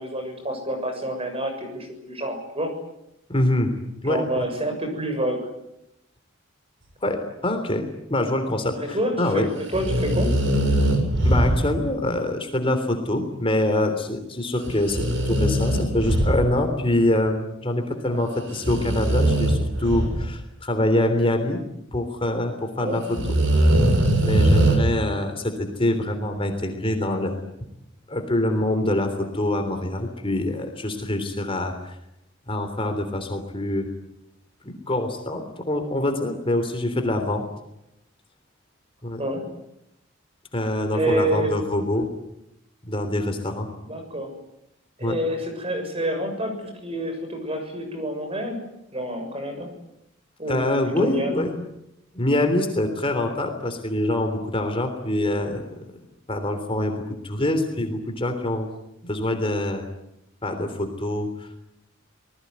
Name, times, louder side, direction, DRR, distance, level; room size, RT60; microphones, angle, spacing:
voice 1, 0.0-2.7 4.0-5.5 8.8-10.3 18.1-18.2 22.8-23.0 39.2-39.5 40.9-41.6 43.8-44.3 45.0-48.6 48.9-49.7 50.4-50.6 51.0-51.5, right 1 dB, 30° right, 6 dB, 7.0 m, -28 dB
voice 2, 3.3-3.7 4.0-4.4 7.0-9.5 11.2-21.6 21.9-23.2 23.6-23.8 24.2-27.4 28.1-31.9 32.5-33.9 34.6-37.5 39.0-39.2 40.5-42.1 42.9-43.7 45.0-45.2 50.5-51.5 52.1-55.8 56.3-58.7 59.0-59.8 60.4-61.6, left 1 dB, 25° left, 6 dB, 3.4 m, -25 dB
sound 1, 9.7-11.9 14.7-16.8 18.5-20.3 23.1-24.8, right 1 dB, 70° right, 7.4 m, -21 dB
27.5 x 20.0 x 9.6 m, 0.85 s
head